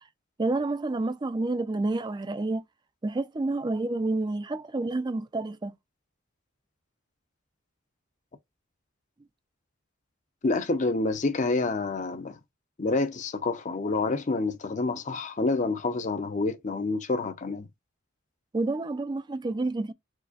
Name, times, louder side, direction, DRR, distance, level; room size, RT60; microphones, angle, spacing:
voice 1, 0.4-2.6 3.0-5.7 18.5-19.9, right 2 dB, 20° right, 0.3 m, -29 dB
voice 2, 10.4-12.4 12.8-17.7, left 3 dB, 35° left, 0.5 m, -28 dB
4.6 x 2.1 x 2.5 m
head